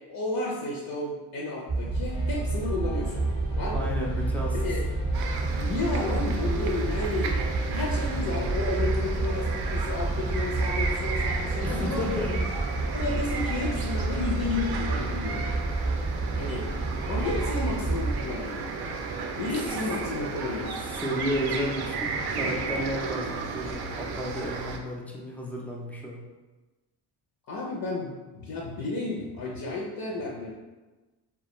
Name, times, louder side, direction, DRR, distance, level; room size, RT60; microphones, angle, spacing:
voice 1, 0.1-3.3 3.6-3.8 4.5-4.8 5.5-7.3 7.7-12.4 12.9-15.5 16.3-16.7 17.1-18.6 19.4-20.8 27.5-30.5, left 3 dB, 55° left, -3 dB, 0.6 m, -32 dB
sound 1, 1.7-18.2, right 2 dB, 25° right, 0.7 m, -29 dB
sound 2, 2.1-17.0, equal, 80° left, 0.9 m, -45 dB
voice 2, 3.7-4.6 11.6-12.3 20.8-26.2, equal, 5° left, -2 dB, 0.3 m, -32 dB
sound 3, 5.1-24.8, right 4 dB, 60° right, 0.5 m, -34 dB
2.2 x 2.2 x 3.0 m, 1.2 s
cardioid pair, 85°, 43 cm